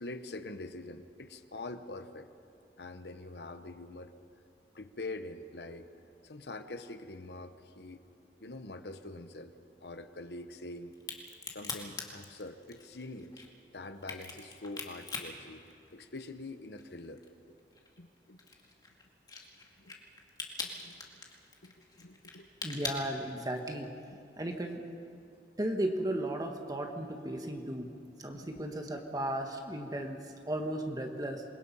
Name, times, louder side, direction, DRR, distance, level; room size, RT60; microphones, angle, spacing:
voice 1, 0.0-2.3 2.8-4.1 4.7-5.9 6.2-8.0 8.4-9.5 9.8-10.9 11.5-13.4 13.7-15.6 15.9-17.2 17.5-17.6 18.0-18.4 19.8-20.0 20.7-21.2 21.6-22.7 27.0-27.1 28.3-28.6, left 2 dB, 65° left, 9 dB, 1.1 m, -45 dB
Crack, 10.9-16.4 16.8-23.8, left 4 dB, 25° left, 2.1 m, -42 dB
voice 2, 22.6-23.9 24.4-24.8 25.6-27.9 28.2-31.4, right 1 dB, 20° right, 3 dB, 1.4 m, -35 dB
27.5 x 22.0 x 5.6 m, 2.6 s
head